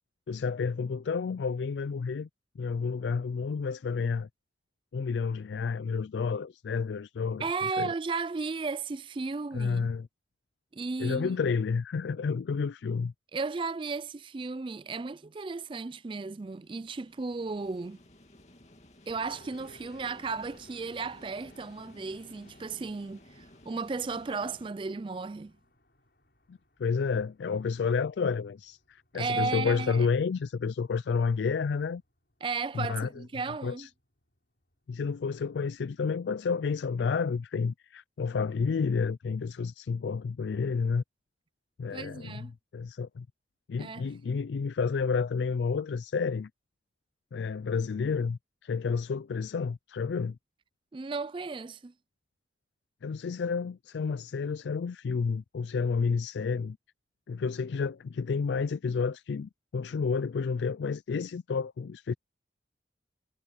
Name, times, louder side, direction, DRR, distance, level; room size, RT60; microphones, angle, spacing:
voice 1, 0.3-2.3 2.6-4.3 4.9-7.9 9.5-10.1 11.0-13.1 26.5-32.0 32.7-33.1 33.6-33.9 34.9-41.0 41.8-43.3 43.7-46.5 47.3-50.4 53.0-56.8 57.3-62.1, left 5 dB, 85° left, 0.4 m, -30 dB
voice 2, 7.4-9.9 10.7-11.4 13.3-18.0 19.1-25.5 29.1-30.1 32.4-33.9 41.9-42.5 43.8-44.0 50.9-51.9, right 4 dB, 30° right, 0.4 m, -34 dB
sound 1, 16.1-24.7, left 1 dB, 40° left, 2.6 m, -56 dB
sound 2, 19.1-35.8, left 1 dB, 65° left, 5.1 m, -62 dB
head